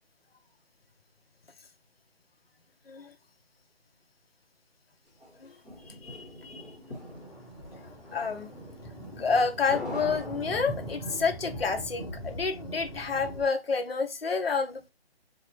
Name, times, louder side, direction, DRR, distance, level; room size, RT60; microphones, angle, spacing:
sound 1, 5.2-11.1, left 1 dB, 5° left, 0.9 m, -43 dB
voice 1, 5.9-6.6 8.1-8.5 9.2-14.9, left 5 dB, 60° left, 0.8 m, -29 dB
Thunder, 6.6-13.5, right 1 dB, 30° left, 1.9 m, -41 dB
4.4 x 2.8 x 3.1 m
figure-of-eight pair, 165°, 32 cm